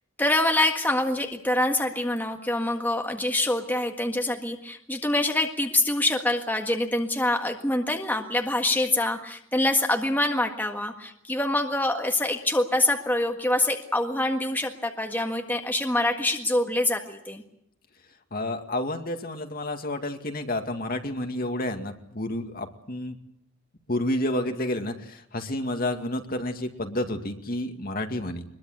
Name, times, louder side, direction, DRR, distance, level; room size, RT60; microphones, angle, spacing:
voice 1, 0.2-17.4, left 1 dB, 10° left, 3 dB, 1.7 m, -25 dB
voice 2, 18.3-23.2 23.9-28.4, left 1 dB, 45° left, 5 dB, 2.2 m, -30 dB
23.0 x 22.0 x 8.1 m, 0.71 s
head